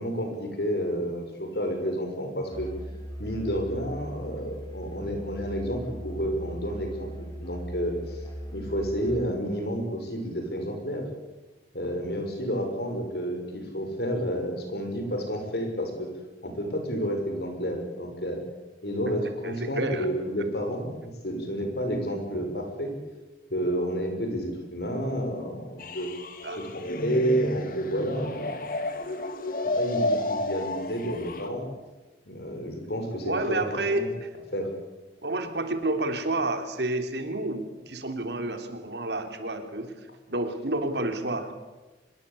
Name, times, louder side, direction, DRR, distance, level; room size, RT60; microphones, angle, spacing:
voice 1, 0.0-2.7 3.2-8.2 8.5-11.1 11.7-16.1 16.4-18.4 18.8-22.9 23.5-26.1 26.7-28.7 29.8-31.6 32.3-33.7 33.9-34.1 34.5-34.7, equal, 65° left, 4 dB, 6.4 m, -30 dB
Musical instrument, 2.4-9.4, equal, 25° left, 6.3 m, -39 dB
voice 2, 19.4-20.1 26.4-27.0 33.2-34.3 35.2-40.0 40.3-41.5, right 2 dB, 75° right, 7 dB, 3.3 m, -30 dB
sound 1, 25.8-31.5, left 2 dB, 50° left, 2.4 m, -31 dB
25.0 x 22.0 x 8.5 m, 1.1 s
head